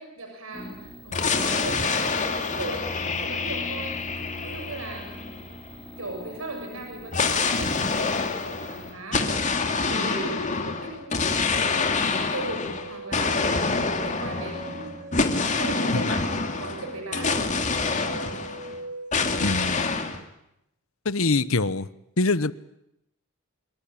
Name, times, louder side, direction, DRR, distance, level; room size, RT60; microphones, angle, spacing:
voice 1, 0.0-2.9 3.2-5.4 6.0-12.0 12.3-17.4, right 1 dB, 70° right, 3 dB, 7.3 m, -37 dB
sound 1, 0.5-8.9, left 1 dB, 5° left, 5.0 m, -44 dB
sound 2, 1.1-5.8 7.1-18.8 19.1-20.2, left 4 dB, 35° left, 2.6 m, -27 dB
sound 3, 12.7-19.8, right 3 dB, 35° right, 1.8 m, -41 dB
voice 2, 19.4-19.9 21.0-21.9 22.2-22.5, left 3 dB, 70° left, 16 dB, 1.1 m, -24 dB
25.5 x 23.5 x 8.8 m, 0.81 s
head